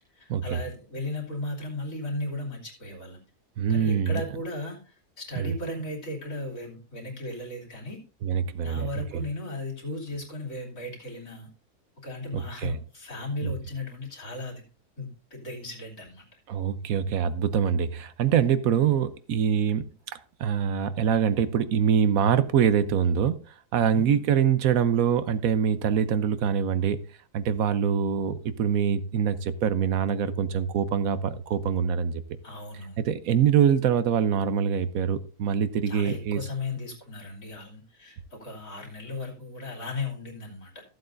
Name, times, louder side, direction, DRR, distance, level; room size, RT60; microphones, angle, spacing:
voice 1, 0.1-3.2 3.7-8.0 8.6-11.5 12.0-14.6 15.0-16.2 23.8-24.2 32.4-33.0 35.9-40.8, left 2 dB, 55° left, 3.3 m, -36 dB
voice 2, 3.6-4.2 5.4-5.5 8.2-8.9 9.1-9.2 12.3-12.8 13.4-13.5 16.5-19.9 20.4-23.4 23.7-27.0 27.3-32.2 33.0-36.4, right 8 dB, 70° right, 1.1 m, -24 dB
14.5 x 7.8 x 2.6 m
omnidirectional pair, 1.7 m